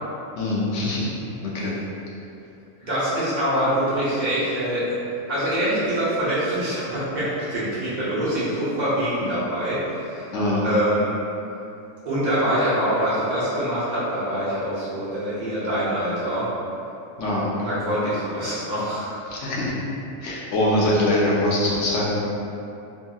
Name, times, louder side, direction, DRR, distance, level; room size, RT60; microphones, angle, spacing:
voice 1, 0.4-1.1 1.4-1.7 10.3-10.7 17.2-17.8 19.3-19.7 20.2-22.2, left 1 dB, 65° left, -6 dB, 0.9 m, -23 dB
voice 2, 2.8-5.0 5.3-10.3 10.6-11.1 12.0-16.5 17.6-19.1, equal, 45° right, -11 dB, 0.7 m, -24 dB
2.8 x 2.6 x 2.3 m, 2.7 s
omnidirectional pair, 1.4 m